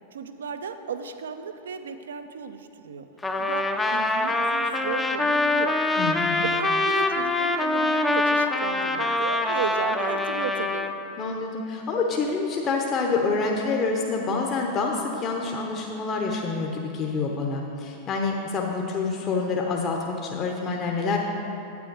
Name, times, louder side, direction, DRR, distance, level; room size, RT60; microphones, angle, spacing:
voice 1, 0.1-3.1 3.4-5.8 6.4-10.8, right 6 dB, 65° right, 8 dB, 0.5 m, -34 dB
Trumpet, 3.2-10.9, left 2 dB, 10° left, 0.6 m, -24 dB
voice 2, 6.0-6.4 11.2-21.2, left 4 dB, 30° left, 0 dB, 0.9 m, -27 dB
9.5 x 8.5 x 4.6 m, 2.9 s
figure-of-eight pair, 90°, 0 cm